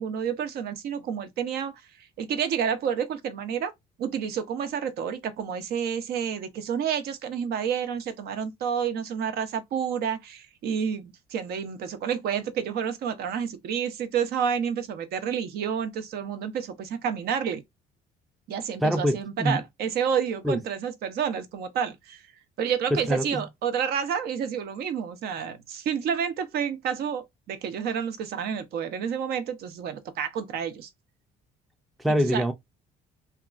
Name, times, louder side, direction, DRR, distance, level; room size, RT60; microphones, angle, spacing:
voice 1, 0.0-1.7 2.2-3.7 4.0-17.6 18.5-22.2 22.6-30.9 32.3-32.4, right 7 dB, 70° right, 0.6 m, -29 dB
voice 2, 18.8-19.6 20.4-20.6 22.9-23.4 32.0-32.5, equal, ahead, 0.4 m, -25 dB
2.8 x 2.3 x 2.4 m
cardioid pair, 110°, 17 cm